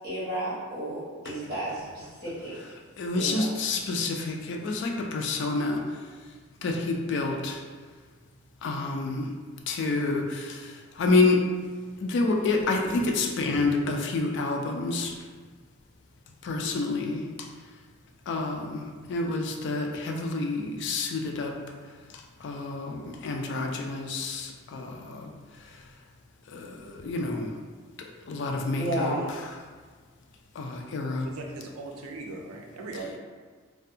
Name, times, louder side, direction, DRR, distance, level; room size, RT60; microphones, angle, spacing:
voice 1, 0.0-2.5 3.1-3.4 28.8-29.3, right 1 dB, 50° right, -11 dB, 1.1 m, -32 dB
voice 2, 3.0-6.1 6.6-7.6 8.6-9.3 9.7-11.4 12.0-15.2 16.4-17.5 18.3-21.6 22.1-25.3 25.6-25.8 26.5-27.5 28.0-29.1 29.4-29.5 30.6-31.3, left 3 dB, 55° left, 2 dB, 0.3 m, -28 dB
voice 3, 31.2-33.2, right 2 dB, 80° right, 1 dB, 0.4 m, -39 dB
2.5 x 2.2 x 2.6 m, 1.5 s
head